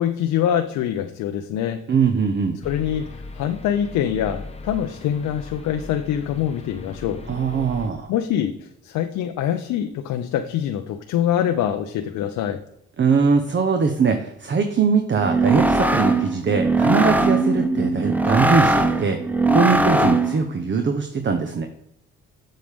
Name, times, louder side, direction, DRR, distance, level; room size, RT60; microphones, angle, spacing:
voice 1, 0.0-1.8 2.6-7.2 8.1-12.6, left 10 dB, 80° left, 6 dB, 0.6 m, -24 dB
voice 2, 1.9-2.6 7.3-8.1 13.0-19.2 19.5-21.7, right 5 dB, 40° right, 6 dB, 0.9 m, -21 dB
sound 1, 2.6-7.9, left 2 dB, 20° left, 1.0 m, -38 dB
sound 2, 15.2-20.5, right 2 dB, 5° right, 0.6 m, -20 dB
7.8 x 6.6 x 3.5 m, 0.78 s
cardioid pair, 90°, 30 cm